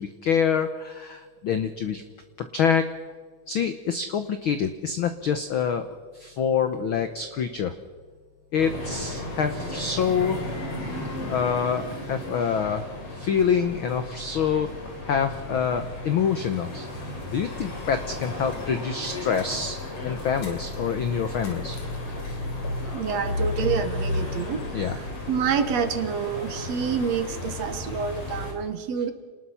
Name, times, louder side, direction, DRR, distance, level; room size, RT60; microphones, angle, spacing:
voice 1, 0.0-2.0 2.5-2.9 3.5-5.9 6.1-7.7 8.5-10.4 11.3-14.7 15.0-16.9 17.3-19.7 20.0-21.8 24.7-25.0, left 7 dB, 80° left, 9 dB, 1.1 m, -26 dB
sound 1, 8.6-28.5, left 2 dB, 50° left, 4.2 m, -34 dB
voice 2, 22.9-29.1, right 6 dB, 60° right, 9 dB, 2.1 m, -28 dB
28.0 x 19.5 x 5.7 m, 1.5 s
omnidirectional pair, 3.6 m